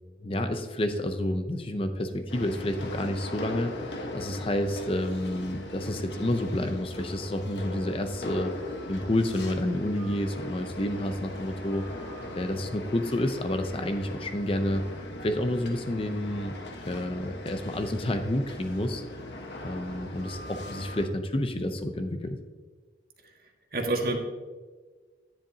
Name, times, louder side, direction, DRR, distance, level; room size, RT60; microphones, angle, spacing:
voice 1, 0.2-11.8 12.4-16.5 16.9-19.3 19.6-22.4, left 1 dB, 30° left, 7 dB, 0.6 m, -30 dB
sound 1, 2.3-21.1, left 1 dB, 75° left, 1.2 m, -40 dB
voice 2, 23.2-24.2, right 2 dB, 55° right, 2 dB, 1.5 m, -30 dB
10.5 x 10.0 x 2.8 m, 1.4 s
head